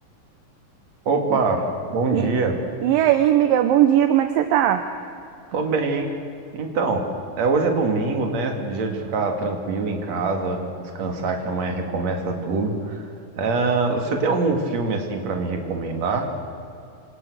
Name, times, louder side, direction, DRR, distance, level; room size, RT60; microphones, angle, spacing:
voice 1, 1.1-2.6 5.5-6.1 6.5-7.1 7.4-13.1 13.4-16.3, right 3 dB, 50° right, 3 dB, 3.5 m, -24 dB
voice 2, 2.8-4.8, right 11 dB, 75° right, 8 dB, 2.5 m, -18 dB
27.0 x 26.0 x 6.5 m, 2.5 s
omnidirectional pair, 4.3 m